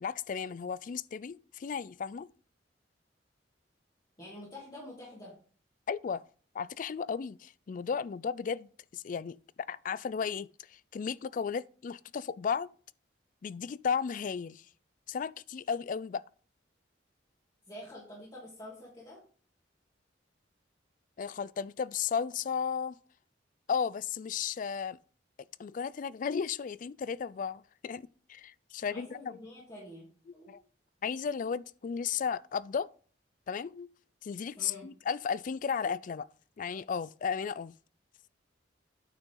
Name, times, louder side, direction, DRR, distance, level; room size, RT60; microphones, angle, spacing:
voice 1, 0.0-2.3 5.9-6.2 6.5-9.4 9.7-12.7 13.4-14.6 15.1-16.2 21.2-23.0 23.7-25.0 25.6-28.0 28.3-29.4 30.5-30.6 31.0-32.9 33.5-33.9 34.2-36.3 36.6-37.7, left 6 dB, 45° left, 0.3 m, -34 dB
voice 2, 4.2-5.3 17.7-19.2 28.9-30.5 34.6-34.9, left 1 dB, 25° left, 2.8 m, -47 dB
9.2 x 6.2 x 3.8 m
head